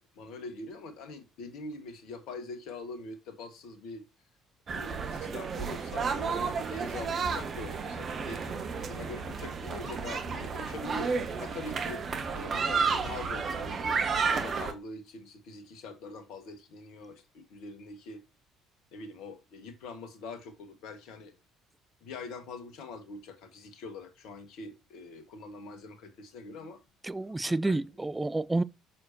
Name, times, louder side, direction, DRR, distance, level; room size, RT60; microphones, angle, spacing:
voice 1, 0.1-4.0 4.7-11.1 11.4-12.0 12.3-18.2 18.9-21.3 22.0-26.8 27.4-27.8, left 3 dB, 65° left, 1.5 m, -43 dB
sound 1, 4.7-14.7, right 5 dB, 45° right, 1.3 m, -32 dB
voice 2, 27.0-28.6, right 2 dB, 15° right, 0.5 m, -29 dB
6.9 x 6.4 x 2.7 m
hypercardioid pair, 55°, 0 cm